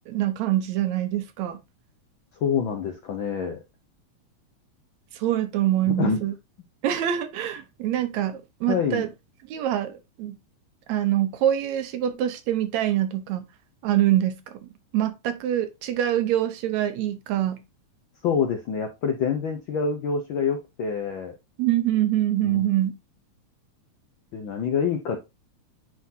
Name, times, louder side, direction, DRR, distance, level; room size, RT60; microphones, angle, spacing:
voice 1, 0.1-1.6 5.1-6.3 6.8-9.1 9.5-10.4 10.9-13.5 13.8-17.6 21.6-22.9, right 12 dB, 75° right, 2.1 m, -25 dB
voice 2, 2.4-3.6 6.0-6.2 8.7-9.0 18.2-21.4 22.4-22.7 24.3-25.2, left 6 dB, 90° left, 1.1 m, -26 dB
9.8 x 3.9 x 2.7 m
omnidirectional pair, 3.3 m